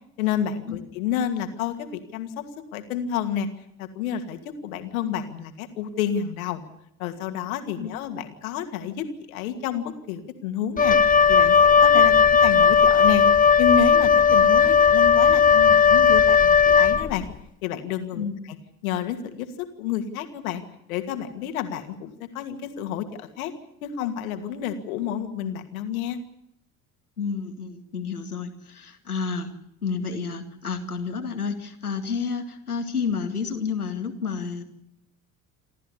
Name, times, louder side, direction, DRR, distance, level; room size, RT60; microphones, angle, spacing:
voice 1, 0.2-3.5 3.8-6.6 7.0-11.0 11.3-13.2 13.6-17.2 17.6-18.3 18.8-20.6 20.9-23.5 23.8-26.2, left 9 dB, 70° left, 7 dB, 2.5 m, -30 dB
Wind instrument woodwind instrument, 10.8-17.3, left 6 dB, 20° left, 1.1 m, -16 dB
voice 2, 27.2-29.5 29.8-34.6, left 5 dB, 90° left, 6 dB, 2.2 m, -30 dB
28.0 x 13.5 x 9.8 m, 0.78 s
figure-of-eight pair, 65°, 44 cm